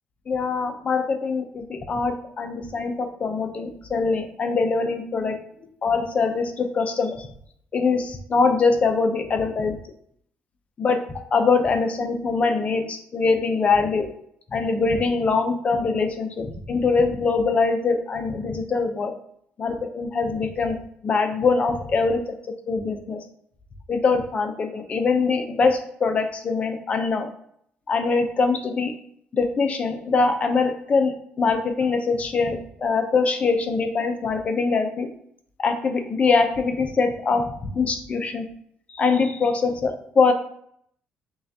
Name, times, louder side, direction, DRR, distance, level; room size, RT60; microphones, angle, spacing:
voice 1, 0.3-5.4 5.8-7.3 7.7-9.8 10.8-11.0 11.3-14.1 14.5-19.1 19.6-20.8 21.0-22.2 22.7-23.2 23.9-27.3 27.9-28.9 29.3-35.1 35.6-37.4 37.7-38.5 38.9-40.3, left 4 dB, 35° left, 6 dB, 0.6 m, -23 dB
5.5 x 2.4 x 2.8 m, 0.67 s
cardioid pair, 120°, 4 cm